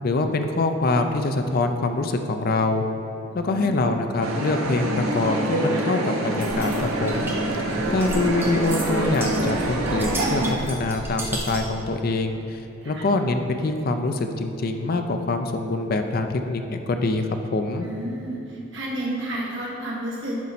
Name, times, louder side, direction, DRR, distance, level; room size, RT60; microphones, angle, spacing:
voice 1, 0.0-2.8 3.3-7.3 7.9-17.9, left 2 dB, 45° left, 6 dB, 0.4 m, -24 dB
voice 2, 3.3-3.9 12.8-13.0 17.8-20.4, right 1 dB, 55° right, -5 dB, 1.5 m, -31 dB
sound 1, 4.2-10.5, right 1 dB, 80° right, 0.9 m, -26 dB
sound 2, 6.4-11.8, right 1 dB, 10° right, 0.7 m, -34 dB
10.5 x 4.1 x 4.2 m, 2.8 s
head